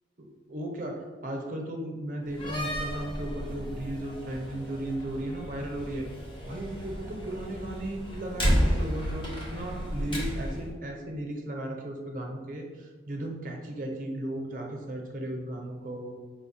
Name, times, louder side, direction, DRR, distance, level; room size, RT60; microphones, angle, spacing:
voice 1, 0.2-16.1, right 1 dB, 45° right, 1 dB, 0.7 m, -36 dB
Slam, 2.3-10.7, equal, 25° left, 0.8 m, -32 dB
5.0 x 2.2 x 4.0 m, 1.4 s
head